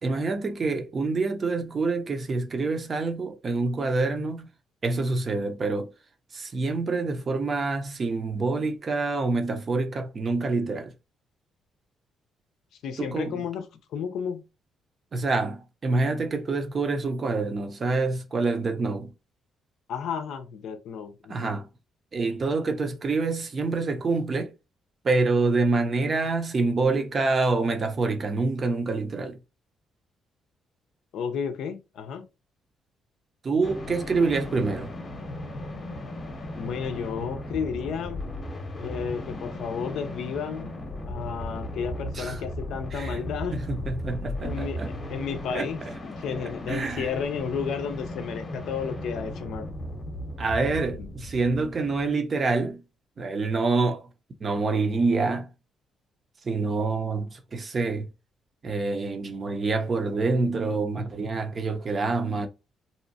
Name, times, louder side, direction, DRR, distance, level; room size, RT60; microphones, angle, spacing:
voice 1, 0.0-4.5 4.8-5.9 6.3-10.9 13.0-13.4 15.1-19.1 21.3-21.7 22.1-24.5 25.0-29.4 33.4-34.9 42.1-42.4 42.9-43.2 43.5-44.9 45.5-45.7 46.7-47.1 50.4-52.8 53.2-54.1 54.4-55.5 56.4-58.1 58.6-62.5, right 3 dB, 40° right, 0.6 m, -26 dB
voice 2, 12.8-13.6 13.9-14.4 19.9-21.5 31.1-32.2 36.6-38.2 38.8-40.7 41.0-43.6 44.4-44.8 45.1-49.7 51.0-51.1, left 6 dB, 75° left, 0.4 m, -32 dB
sound 1, 33.6-52.1, left 1 dB, 35° left, 0.8 m, -36 dB
2.7 x 2.1 x 2.6 m
cardioid pair, 90°, 0 cm